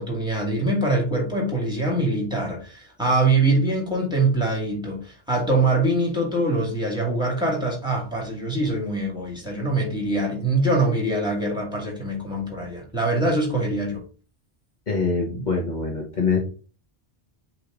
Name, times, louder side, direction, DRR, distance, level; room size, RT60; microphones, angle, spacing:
voice 1, 0.0-14.0, right 2 dB, 5° right, 2.2 m, -23 dB
voice 2, 14.9-16.4, left 4 dB, 45° left, 1.2 m, -24 dB
8.1 x 3.2 x 3.7 m
omnidirectional pair, 1.1 m